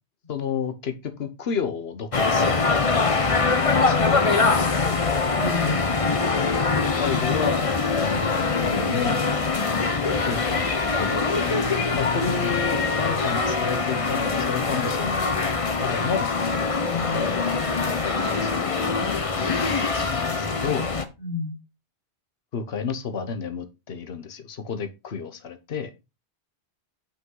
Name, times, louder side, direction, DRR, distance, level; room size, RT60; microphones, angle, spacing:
voice 1, 0.3-5.0 7.0-9.2 10.2-10.7 11.0-11.4 11.9-16.3 17.1-17.3 17.9-20.9 22.5-25.9, left 6 dB, 65° left, 1.3 m, -32 dB
sound 1, 2.1-21.0, left 4 dB, 35° left, 0.9 m, -23 dB
voice 2, 5.3-6.1 16.8-17.2 21.2-21.6, left 3 dB, 50° left, 2.2 m, -31 dB
8.6 x 5.5 x 3.9 m
omnidirectional pair, 1.1 m